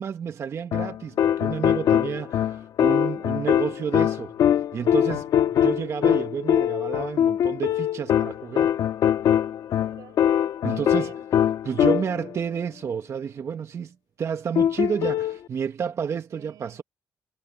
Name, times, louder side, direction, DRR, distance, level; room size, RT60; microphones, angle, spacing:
voice 1, 0.0-4.3 4.7-5.3 5.5-8.8 10.6-11.1 11.6-16.8, right 7 dB, 50° right, 0.8 m, -30 dB
sound 1, 0.7-12.3 14.6-15.4, left 10 dB, 75° left, 1.1 m, -22 dB
voice 2, 9.7-10.2 10.8-11.3 16.3-16.8, right 12 dB, 85° right, 5.3 m, -48 dB
cardioid pair, 105°, 6 cm